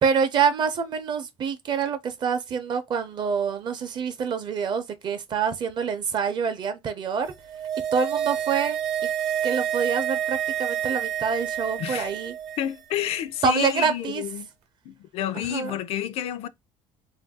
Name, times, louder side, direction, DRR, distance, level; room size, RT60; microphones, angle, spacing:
voice 1, 0.0-7.3 7.9-8.8 9.4-12.3 13.4-14.2 15.5-15.7, right 6 dB, 40° right, 0.6 m, -26 dB
sound 1, 7.3-12.8 13.1-13.2, right 10 dB, 85° right, 0.7 m, -28 dB
voice 2, 11.8-12.1 12.6-14.5 14.8-16.5, left 10 dB, 65° left, 0.4 m, -29 dB
2.6 x 2.2 x 3.5 m
cardioid pair, 135°, 11 cm